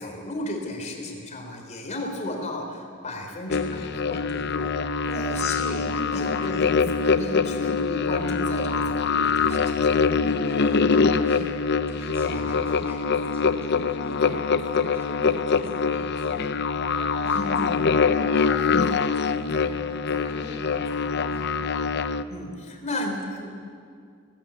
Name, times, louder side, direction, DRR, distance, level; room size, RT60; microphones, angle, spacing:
voice 1, 0.0-4.7 5.1-10.0 12.2-12.5 17.3-17.7 22.3-23.5, left 1 dB, 35° left, 2 dB, 3.8 m, -34 dB
sound 1, 3.5-22.2, left 5 dB, 50° left, 0.7 m, -24 dB
voice 2, 5.0-6.2 10.3-16.5 16.9-17.8 18.1-21.8, right 1 dB, 10° right, -2 dB, 6.2 m, -42 dB
19.5 x 18.0 x 8.7 m, 2.2 s
head